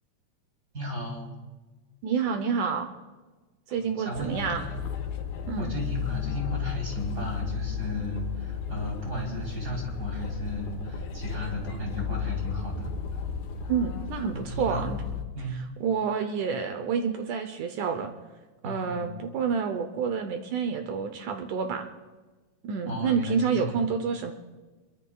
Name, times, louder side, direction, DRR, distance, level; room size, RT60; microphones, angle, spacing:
voice 1, 0.7-1.3 3.7-4.7 5.6-12.9 14.3-14.9 15.4-15.6 18.6-19.1 22.9-23.8, left 1 dB, 25° right, -1 dB, 3.6 m, -34 dB
voice 2, 2.0-2.9 3.7-4.6 5.5-5.7 13.7-15.0 15.8-18.1 18.6-21.9 22.6-24.3, right 6 dB, 70° right, 7 dB, 2.0 m, -28 dB
sound 1, 4.1-15.2, left 7 dB, 90° left, 3.1 m, -34 dB
25.5 x 22.5 x 2.3 m, 1.3 s
omnidirectional pair, 4.1 m